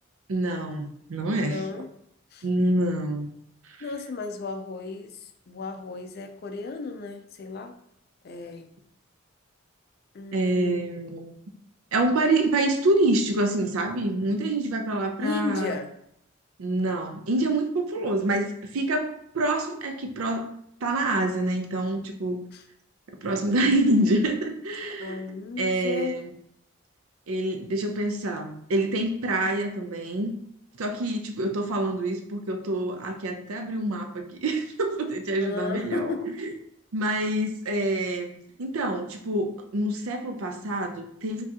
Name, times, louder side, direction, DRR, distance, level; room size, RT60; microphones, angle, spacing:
voice 1, 0.3-1.6 2.4-3.3 10.3-11.3 11.9-15.8 16.6-20.5 20.8-22.4 23.2-25.2 25.6-26.3 27.3-30.3 30.8-36.1 36.4-36.5 36.9-38.3 38.6-41.4, right 1 dB, 90° right, 5 dB, 0.5 m, -26 dB
voice 2, 1.4-1.9 2.3-2.5 3.8-7.7 8.2-8.7 10.1-10.8 15.2-15.9 22.5-22.6 25.0-26.2 35.4-36.3, left 3 dB, 50° left, 6 dB, 0.4 m, -34 dB
4.6 x 2.4 x 2.8 m, 0.73 s
head